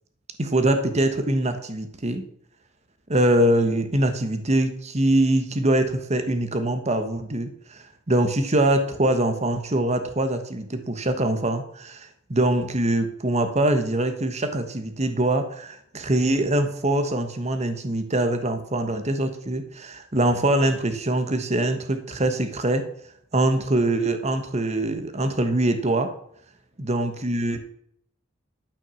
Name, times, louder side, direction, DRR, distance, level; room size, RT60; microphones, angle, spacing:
voice 1, 0.4-2.3 3.1-22.9 23.3-26.1 26.8-27.6, right 1 dB, 35° right, 8 dB, 1.2 m, -23 dB
12.0 x 5.9 x 6.3 m, 0.67 s
head